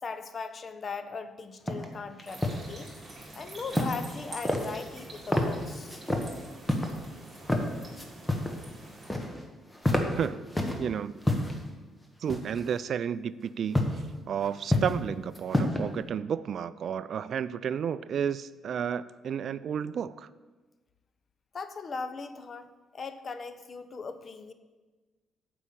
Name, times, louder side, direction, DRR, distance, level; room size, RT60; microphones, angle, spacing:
voice 1, 0.0-2.9 3.3-6.0 21.5-22.7 22.9-24.5, left 4 dB, 45° left, 11 dB, 0.7 m, -39 dB
sound 1, 1.7-1.9 2.2-2.6 3.7-4.1 4.4-5.0 5.3-5.5 5.9-6.3 6.7-6.9 7.4-7.6 8.0-8.6 8.8-9.4 9.7-10.8 11.2-11.6 12.3-12.7 13.7-14.0 14.4-15.0 15.3-15.8, left 1 dB, 10° left, 1.3 m, -28 dB
sound 2, 2.2-9.1, right 1 dB, 30° right, 3.7 m, -46 dB
voice 2, 10.2-10.5 10.8-11.2 12.2-20.3, right 8 dB, 60° right, 16 dB, 0.3 m, -32 dB
8.2 x 5.4 x 7.5 m, 1.3 s
cardioid pair, 90°, 0 cm